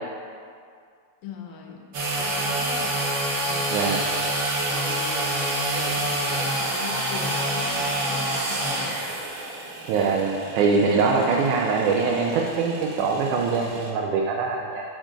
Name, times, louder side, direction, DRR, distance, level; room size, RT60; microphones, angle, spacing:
voice 1, 1.2-1.9 2.2-3.1 3.5-9.0 10.9-11.2, left 6 dB, 80° left, 1 dB, 2.1 m, -39 dB
sound 1, 1.9-13.9, right 1 dB, 50° right, 1.5 m, -28 dB
voice 2, 3.7-4.0 9.9-14.8, right 4 dB, 80° right, -1 dB, 2.0 m, -23 dB
7.5 x 4.4 x 5.0 m, 2.2 s
omnidirectional pair, 3.5 m